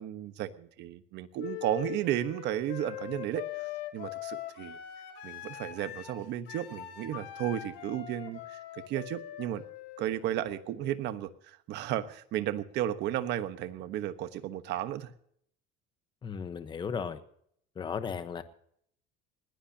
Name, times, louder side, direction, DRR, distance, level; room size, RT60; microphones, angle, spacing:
voice 1, 0.0-3.4 3.9-4.8 5.2-9.6 10.0-15.1, right 12 dB, 55° right, 10 dB, 1.2 m, -34 dB
Wind instrument woodwind instrument, 1.4-11.2, left 12 dB, 65° left, 3.3 m, -42 dB
voice 2, 16.2-17.2 17.7-18.4, left 6 dB, 20° left, 11 dB, 1.1 m, -35 dB
21.0 x 17.0 x 2.9 m, 0.66 s
cardioid pair, 160°, 21 cm